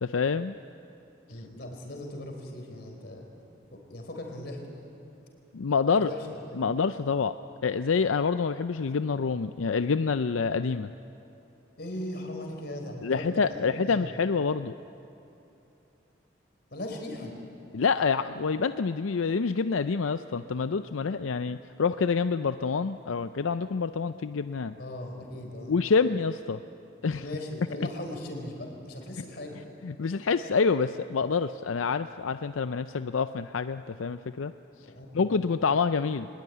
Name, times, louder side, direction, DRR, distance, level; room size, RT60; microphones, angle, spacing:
voice 1, 0.0-0.6 5.5-6.1 6.6-7.3 7.6-10.9 13.0-14.7 17.7-24.8 25.7-26.6 27.0-27.2 29.8-34.5 35.1-36.3, left 5 dB, 90° left, 11 dB, 0.5 m, -27 dB
voice 2, 1.3-3.3 3.7-4.7 5.9-6.7 11.8-14.1 16.7-17.3 24.8-25.7 27.2-29.6 34.8-35.4, left 1 dB, 55° left, 3 dB, 4.3 m, -38 dB
23.5 x 21.0 x 9.3 m, 3.0 s
head